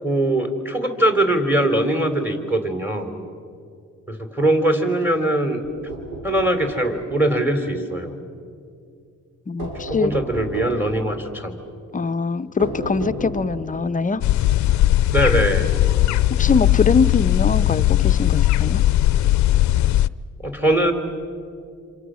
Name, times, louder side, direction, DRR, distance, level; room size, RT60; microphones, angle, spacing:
voice 1, 0.0-3.1 4.1-5.6 6.2-8.1 9.9-11.5 15.1-15.8 20.4-20.9, right 1 dB, 5° right, 5 dB, 3.3 m, -21 dB
sound 1, 5.6-6.6 9.6-10.9 12.6-13.8, right 1 dB, 80° right, 6.6 m, -32 dB
voice 2, 9.5-10.1 11.9-14.2 16.4-18.8, left 5 dB, 25° left, 13 dB, 0.6 m, -22 dB
sound 2, 14.2-20.1, left 14 dB, 70° left, 0.5 m, -18 dB
27.0 x 26.5 x 6.3 m, 2.4 s
cardioid pair, 90°, 30 cm